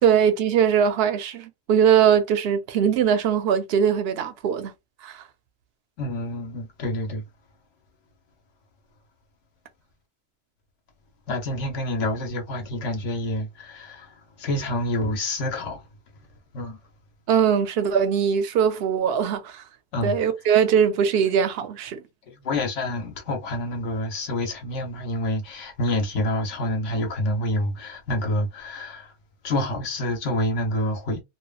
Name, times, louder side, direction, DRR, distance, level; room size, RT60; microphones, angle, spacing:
voice 1, 0.0-4.7 5.0-5.2 17.3-19.6 20.0-22.0, right 8 dB, 65° right, 0.7 m, -21 dB
voice 2, 6.0-7.2 11.3-14.1 14.4-15.8 16.5-16.8 19.9-20.2 22.4-29.1 29.4-31.2, left 1 dB, 75° left, 1.2 m, -27 dB
2.9 x 2.3 x 2.2 m
omnidirectional pair, 1.3 m